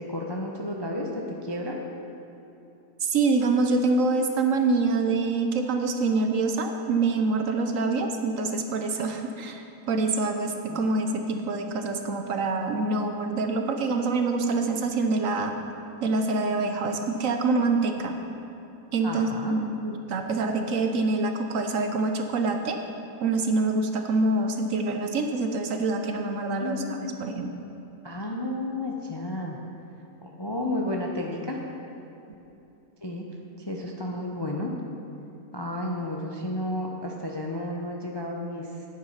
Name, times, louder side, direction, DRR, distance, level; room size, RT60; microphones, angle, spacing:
voice 1, 0.0-1.8 10.7-10.9 11.2-11.3 19.0-19.5 26.6-27.2 28.0-29.6 30.2-31.6 33.0-33.3 33.6-34.7 35.5-38.9, left 1 dB, 25° left, 0 dB, 0.5 m, -32 dB
voice 2, 3.0-15.5 16.0-18.1 18.9-22.8 23.2-26.8 27.2-27.5, right 3 dB, 60° right, 5 dB, 1.0 m, -25 dB
10.0 x 8.9 x 5.6 m, 2.9 s
omnidirectional pair, 1.7 m